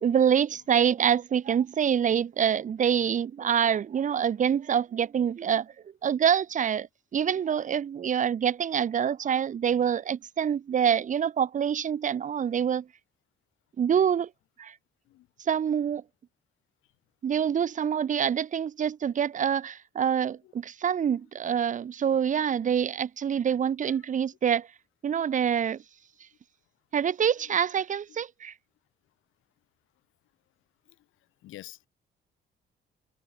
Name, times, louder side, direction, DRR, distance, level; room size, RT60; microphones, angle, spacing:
voice 1, 0.0-5.7 6.0-6.9 7.1-12.8 13.8-14.3 14.6-14.7 15.5-16.0 17.2-24.7 25.0-25.8 26.9-28.5, right 8 dB, 40° right, 0.6 m, -26 dB
voice 2, 25.4-25.8 27.4-27.6 28.1-28.2 30.9-31.1 31.4-31.9, left 15 dB, 90° left, 4.0 m, -50 dB
cardioid pair, 90°, 20 cm